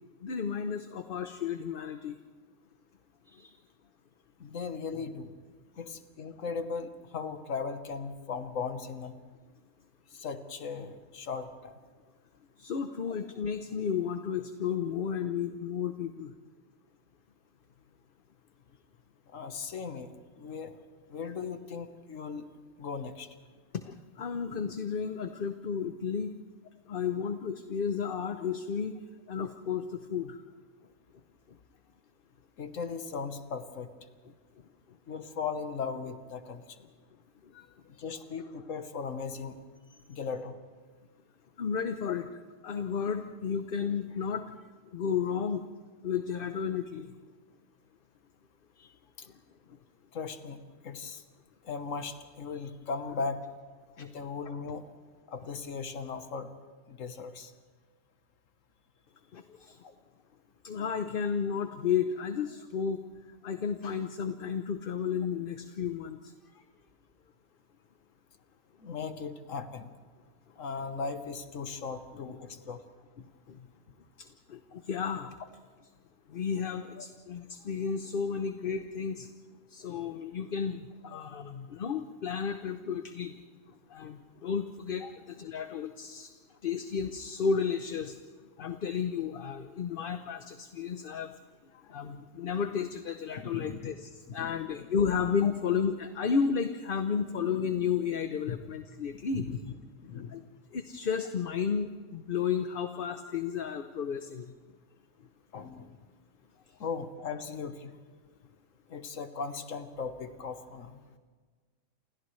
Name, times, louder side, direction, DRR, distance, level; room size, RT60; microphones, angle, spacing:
voice 1, 0.2-2.2 3.3-3.6 12.6-16.3 23.7-26.4 26.9-29.0 29.3-30.4 37.4-37.7 37.9-38.0 41.6-45.7 46.0-47.1 54.0-54.1 59.3-59.8 60.6-63.0 63.4-66.6 73.2-73.7 74.2-75.3 76.3-79.3 79.7-83.4 83.9-86.3 86.6-88.2 88.6-91.3 91.7-99.4 100.3-100.4 100.7-104.5 106.7-106.8, left 6 dB, 50° left, 8 dB, 0.9 m, -33 dB
voice 2, 4.4-5.3 5.8-9.1 10.1-11.7 19.3-20.7 21.1-22.4 22.8-23.3 32.6-33.9 35.1-36.8 38.0-39.6 40.1-40.6 42.1-42.2 48.8-48.9 49.2-49.3 50.1-51.2 51.6-53.4 54.0-54.9 55.3-56.5 56.9-57.5 59.8-59.9 68.8-69.9 70.6-72.8 74.7-74.8 77.0-77.1 81.1-81.2 85.0-85.1 93.4-93.8 94.3-94.9 95.4-95.5 98.5-98.6 99.1-99.7 100.0-100.4 105.5-106.0 106.8-107.9 108.9-111.0, left 5 dB, 85° left, 8 dB, 1.5 m, -38 dB
28.5 x 28.0 x 3.2 m, 1.5 s
omnidirectional pair, 1.3 m